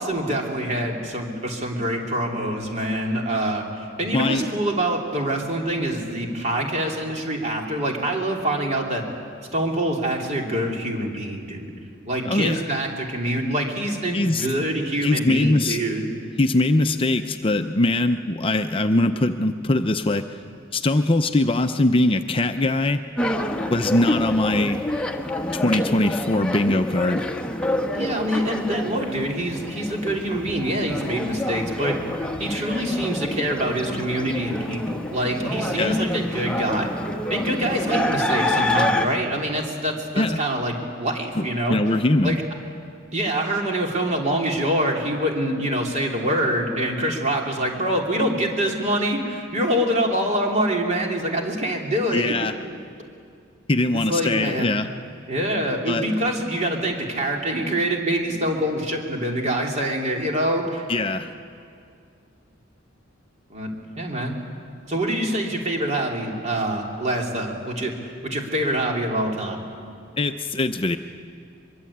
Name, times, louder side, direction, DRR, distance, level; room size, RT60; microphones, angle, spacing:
voice 1, 0.0-9.0 9.5-11.8 12.0-16.1 27.9-32.0 32.4-36.9 37.3-41.8 42.2-42.4 43.1-52.4 53.9-54.7 55.3-60.8 63.5-64.4 64.9-69.6, right 1 dB, 35° right, 1 dB, 3.4 m, -25 dB
voice 2, 4.1-4.4 12.2-12.6 14.1-14.5 15.0-15.8 16.4-20.3 20.7-23.0 23.7-24.8 25.5-27.3 35.8-36.0 40.2-40.4 41.4-42.4 52.1-52.5 53.7-54.9 55.9-56.1 60.9-61.3 70.2-71.0, left 2 dB, 25° left, 7 dB, 0.6 m, -21 dB
sound 1, 23.2-39.1, left 1 dB, 5° left, 1.3 m, -27 dB
23.5 x 23.0 x 8.7 m, 2.4 s
head